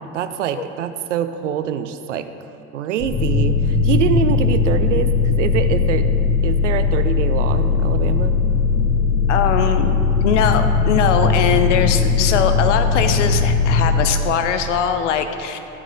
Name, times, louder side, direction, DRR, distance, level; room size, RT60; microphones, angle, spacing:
voice 1, 0.1-2.3 2.7-6.1 6.4-8.4, right 9 dB, 65° right, 10 dB, 0.6 m, -24 dB
sound 1, 3.0-14.0, left 4 dB, 25° left, 2.5 m, -18 dB
voice 2, 9.3-9.9 10.2-15.6, left 8 dB, 60° left, 8 dB, 0.8 m, -21 dB
13.0 x 8.1 x 3.7 m, 2.8 s
figure-of-eight pair, 70°, 40 cm